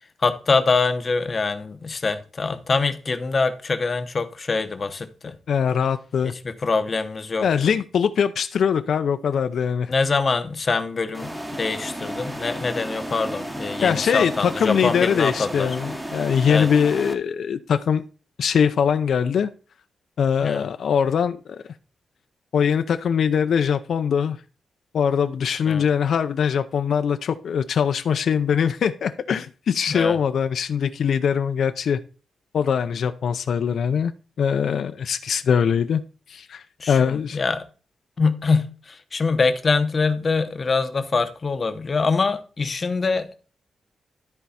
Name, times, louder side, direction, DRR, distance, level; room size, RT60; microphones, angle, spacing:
voice 1, 0.2-5.3 6.2-7.5 9.9-15.8 16.5-16.7 20.4-20.7 25.7-25.8 29.9-30.2 36.8-37.6 38.2-43.3, left 4 dB, 30° left, 0.8 m, -24 dB
voice 2, 5.5-6.3 7.4-9.9 13.8-18.0 18.4-19.5 20.2-21.4 22.5-24.4 24.9-32.0 32.5-34.1 34.4-36.0 36.3-37.4, left 7 dB, 60° left, 0.6 m, -22 dB
sound 1, 11.1-17.1, right 1 dB, 10° right, 1.0 m, -33 dB
13.0 x 4.6 x 4.2 m
wide cardioid pair, 180°, 0 cm